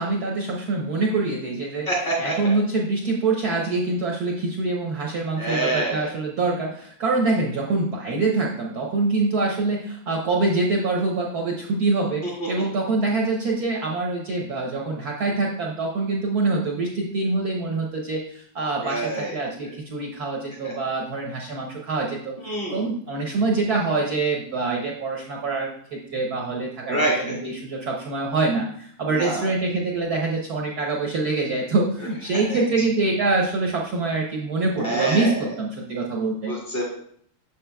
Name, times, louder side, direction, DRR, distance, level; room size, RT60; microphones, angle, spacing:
voice 1, 0.0-1.9 2.2-22.4 22.7-36.5, right 3 dB, 60° right, -1 dB, 1.1 m, -25 dB
voice 2, 1.9-2.5 5.4-6.1 18.8-19.3 22.4-22.9 26.9-27.4 29.1-29.5 32.5-32.6 34.8-35.4 36.5-36.8, right 1 dB, 30° left, -3 dB, 1.5 m, -26 dB
7.0 x 7.0 x 2.2 m, 0.63 s
omnidirectional pair, 2.3 m